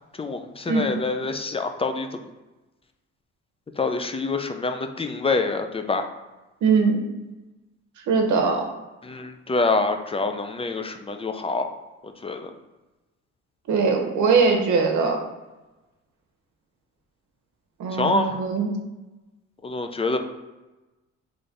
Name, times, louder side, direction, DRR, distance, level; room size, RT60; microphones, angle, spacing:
voice 1, 0.2-2.1 3.8-6.1 9.0-11.7 12.0-12.5 17.9-18.4 19.6-20.2, left 3 dB, 20° left, 7 dB, 0.4 m, -26 dB
voice 2, 6.6-7.0 8.1-8.6 13.7-15.2 17.8-18.7, right 4 dB, 75° right, 3 dB, 1.0 m, -21 dB
3.9 x 3.3 x 3.8 m, 1.1 s
cardioid pair, 90°, 30 cm